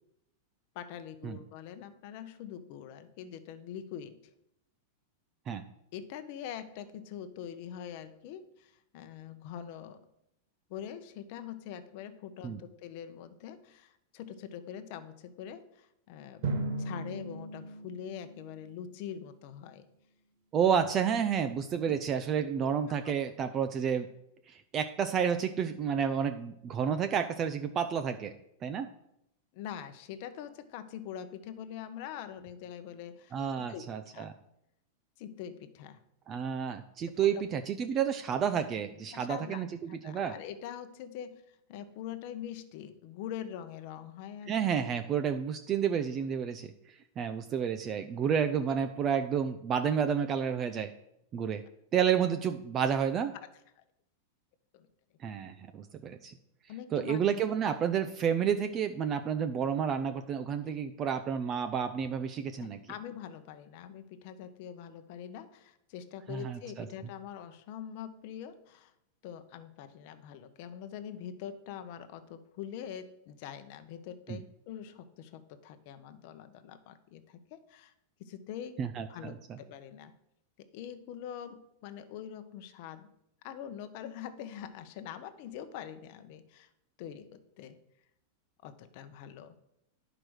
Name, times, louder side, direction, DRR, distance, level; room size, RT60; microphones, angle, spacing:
voice 1, 0.7-4.2 5.9-10.1 10.7-16.4 16.8-19.9 21.8-22.0 23.0-23.2 29.5-34.3 35.2-36.0 37.1-37.4 39.1-44.5 53.8-53.9 54.7-54.9 56.7-57.2 62.6-68.9 69.2-77.9 78.2-78.8 79.1-80.1 80.6-83.1 83.4-86.7 87.0-87.8 88.6-89.6, left 9 dB, 45° left, 10 dB, 0.8 m, -44 dB
Drum, 16.4-19.1, right 2 dB, 50° right, 1.8 m, -37 dB
voice 2, 20.5-24.1 24.5-28.3 28.6-28.9 33.3-34.3 36.3-40.3 44.5-46.7 47.2-50.9 51.3-51.6 51.9-53.3 55.2-56.3 56.9-62.8 66.3-66.9 74.3-74.4 78.8-79.6, right 7 dB, 20° right, 8 dB, 0.4 m, -30 dB
10.5 x 4.9 x 6.2 m, 0.80 s
supercardioid pair, 170°, 0 cm